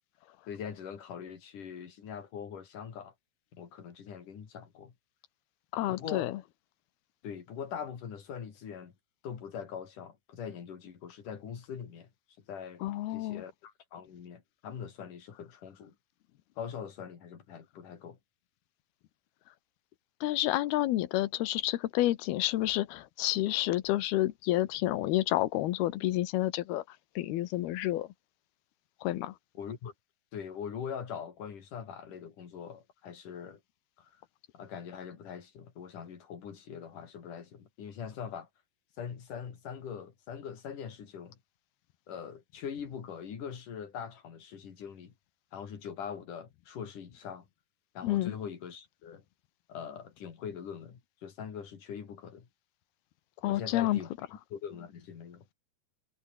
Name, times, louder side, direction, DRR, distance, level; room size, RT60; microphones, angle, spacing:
voice 1, 0.5-3.1 3.5-4.9 5.9-6.3 7.2-8.9 9.2-12.1 12.5-16.0 16.6-18.2 29.5-29.9 30.3-33.6 34.0-34.2 34.5-38.5 39.0-41.4 42.1-45.1 45.5-47.5 47.9-49.2 49.7-52.5 53.5-54.1 54.5-55.5, left 7 dB, 55° left, 4.5 m, -42 dB
voice 2, 5.7-6.4 12.8-13.4 20.2-26.8 27.2-28.1 29.0-29.3 48.0-48.3 53.4-54.0, left 15 dB, 85° left, 3.0 m, -29 dB
omnidirectional pair, 4.5 m